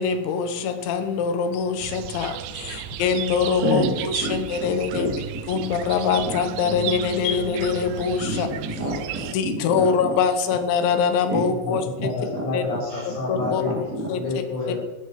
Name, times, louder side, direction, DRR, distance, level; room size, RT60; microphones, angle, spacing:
voice 1, 0.0-2.6 3.0-5.2 5.5-8.5 9.3-12.1 12.5-12.6 13.3-13.6 14.1-14.4, left 6 dB, 85° left, 9 dB, 3.6 m, -24 dB
sound 1, 1.8-9.3, right 13 dB, 80° right, 2.8 m, -34 dB
voice 2, 3.6-5.1 5.5-5.6 8.2-10.1 11.3-11.4 12.0-12.1 12.3-12.4 13.4-14.1, right 1 dB, 25° right, -1 dB, 2.9 m, -28 dB
voice 3, 11.5-13.7 14.1-14.8, left 3 dB, 70° left, -7 dB, 7.5 m, -29 dB
17.5 x 13.0 x 4.9 m, 1.2 s
omnidirectional pair, 5.1 m